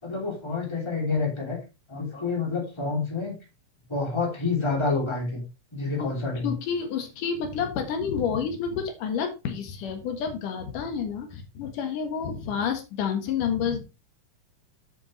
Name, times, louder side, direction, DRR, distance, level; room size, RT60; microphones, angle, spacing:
voice 1, 0.0-1.6 1.9-3.3 3.9-5.4 5.7-6.5, left 4 dB, 10° left, -1 dB, 2.7 m, -28 dB
voice 2, 6.4-13.8, left 7 dB, 90° left, 5 dB, 3.1 m, -29 dB
8.6 x 7.7 x 3.2 m, 0.28 s
omnidirectional pair, 3.6 m